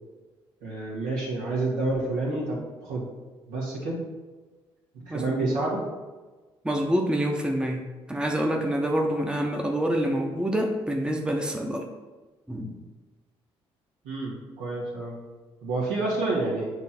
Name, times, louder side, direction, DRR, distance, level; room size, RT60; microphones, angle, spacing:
voice 1, 0.6-3.1 3.5-4.0 4.9-5.8 14.0-15.2 15.6-16.7, right 2 dB, 75° right, -4 dB, 1.8 m, -29 dB
voice 2, 5.1-5.6 6.6-11.9 12.5-12.7, equal, 5° right, 1 dB, 0.9 m, -26 dB
8.0 x 3.1 x 4.3 m, 1.2 s
hypercardioid pair, 45°, 14 cm